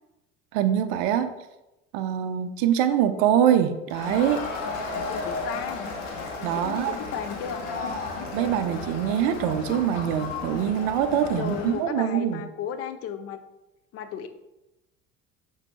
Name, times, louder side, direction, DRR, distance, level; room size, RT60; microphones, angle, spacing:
voice 1, 0.5-1.3 1.9-4.5 6.4-7.0 8.3-12.4, right 10 dB, 55° right, 10 dB, 0.5 m, -24 dB
Crowd, 3.9-11.8, left 3 dB, 70° left, 1.1 m, -34 dB
voice 2, 5.1-5.9 6.5-7.7 11.4-13.4 13.9-14.3, left 8 dB, 40° left, 9 dB, 0.4 m, -34 dB
5.8 x 2.7 x 2.9 m, 0.96 s
hypercardioid pair, 70°, 38 cm